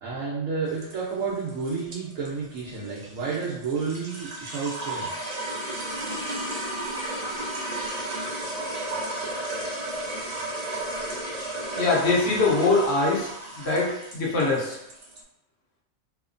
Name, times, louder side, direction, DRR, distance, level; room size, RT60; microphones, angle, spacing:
voice 1, 0.0-5.3, right 5 dB, 80° right, -6 dB, 1.0 m, -31 dB
sound 1, 0.7-15.2, right 1 dB, 55° right, 0.4 m, -33 dB
voice 2, 11.8-13.3 13.6-14.8, left 3 dB, 60° left, -4 dB, 0.9 m, -22 dB
2.9 x 2.1 x 2.4 m, 0.84 s
omnidirectional pair, 1.3 m